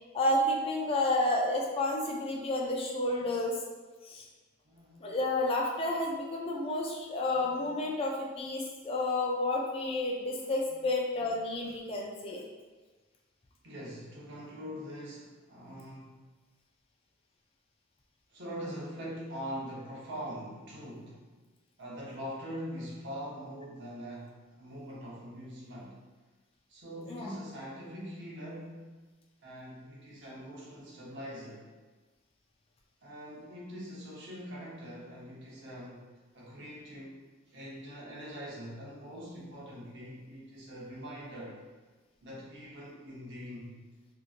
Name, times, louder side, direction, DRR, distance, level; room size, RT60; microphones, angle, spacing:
voice 1, 0.1-3.6 4.1-4.3 5.0-12.4 27.1-27.3, left 1 dB, 25° left, -1 dB, 0.3 m, -30 dB
voice 2, 4.6-5.1 7.3-7.9 10.7-10.8 11.2-11.3 13.6-16.1 18.3-21.3 21.8-26.0 26.7-29.0 29.4-31.6 33.0-36.1 36.3-41.6 42.2-43.8, equal, 55° right, -5 dB, 0.8 m, -43 dB
3.0 x 2.5 x 2.4 m, 1.3 s
head